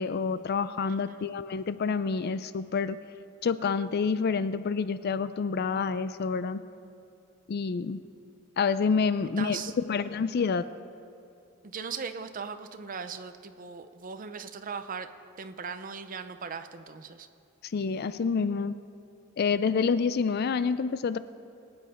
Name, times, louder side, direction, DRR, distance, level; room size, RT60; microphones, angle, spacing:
voice 1, 0.0-3.0 3.4-6.6 7.5-8.0 8.6-9.6 9.8-10.7 17.7-18.8 19.4-21.2, left 5 dB, 50° left, 14 dB, 0.4 m, -28 dB
voice 2, 0.9-1.3 9.4-9.7 11.6-15.1 15.4-17.3, right 6 dB, 40° right, 9 dB, 0.6 m, -39 dB
22.5 x 8.7 x 4.4 m, 2.6 s
head